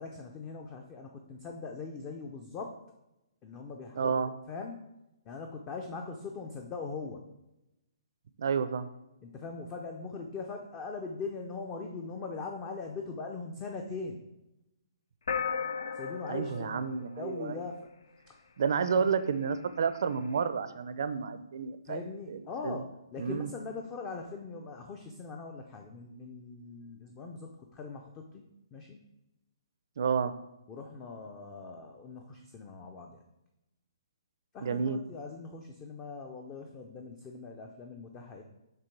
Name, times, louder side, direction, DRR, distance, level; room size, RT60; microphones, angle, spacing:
voice 1, 0.0-2.8 3.4-4.8 5.3-7.2 9.2-14.2 15.9-17.9 18.3-18.4 21.9-28.4 28.7-29.0 30.7-33.2 34.5-38.4, left 4 dB, 15° left, 3 dB, 0.3 m, -41 dB
voice 2, 4.0-4.3 8.4-8.9 16.3-17.6 18.6-22.0 22.3-22.8 23.2-23.5 30.0-30.3 34.6-35.0, right 6 dB, 50° right, 12 dB, 0.4 m, -30 dB
sound 1, 15.3-17.9, left 6 dB, 80° left, 0.5 m, -35 dB
6.7 x 3.5 x 4.5 m, 0.91 s
hypercardioid pair, 170°, 3 cm